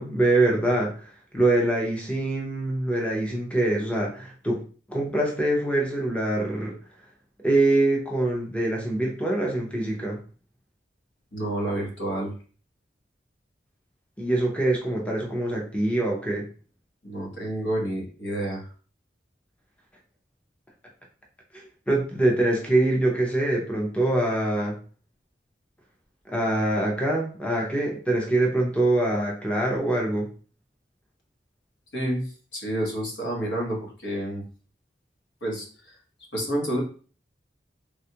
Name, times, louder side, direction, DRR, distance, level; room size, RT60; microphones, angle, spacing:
voice 1, 0.0-4.6 4.9-6.7 7.4-10.2 14.2-16.4 21.5-24.8 26.3-30.3, right 2 dB, 5° left, -1 dB, 0.6 m, -24 dB
voice 2, 11.3-12.3 17.0-18.7 31.9-34.4 35.4-36.0 36.3-36.8, right 1 dB, 85° left, -1 dB, 1.2 m, -29 dB
3.4 x 2.3 x 2.8 m, 0.39 s
head